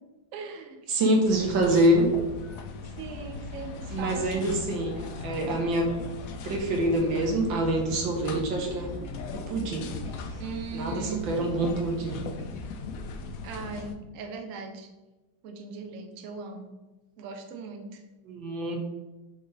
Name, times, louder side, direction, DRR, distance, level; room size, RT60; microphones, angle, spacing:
voice 1, 0.3-0.8 2.8-4.5 10.4-11.2 13.4-14.9 15.4-16.7 17.2-18.0, right 5 dB, 60° right, 4 dB, 0.9 m, -39 dB
voice 2, 0.9-2.1 3.9-5.9 6.4-8.9 9.3-9.9 10.7-12.2 18.3-18.8, right 1 dB, 85° right, 1 dB, 1.9 m, -26 dB
sound 1, 1.3-14.0, left 4 dB, 70° left, 0.8 m, -38 dB
6.3 x 4.0 x 3.9 m, 1.1 s
omnidirectional pair, 2.0 m